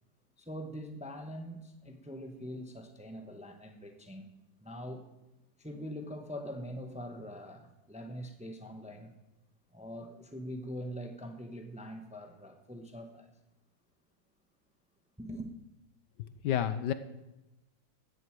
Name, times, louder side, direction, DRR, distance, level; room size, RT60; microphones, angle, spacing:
voice 1, 0.4-4.3 4.6-5.1 5.6-9.1 9.7-13.3 15.2-15.5, equal, 5° right, 6 dB, 0.9 m, -43 dB
voice 2, 16.2-16.9, left 10 dB, 70° left, 13 dB, 1.3 m, -31 dB
15.0 x 8.0 x 7.5 m, 0.96 s
omnidirectional pair, 2.0 m